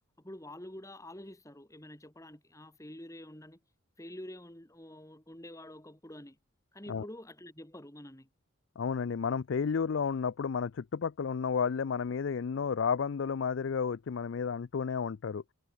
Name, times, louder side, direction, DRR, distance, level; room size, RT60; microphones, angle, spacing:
voice 1, 0.2-3.6 4.0-6.4 6.7-8.3, left 1 dB, 15° left, 2.1 m, -47 dB
voice 2, 8.8-15.4, left 6 dB, 60° left, 0.4 m, -32 dB
head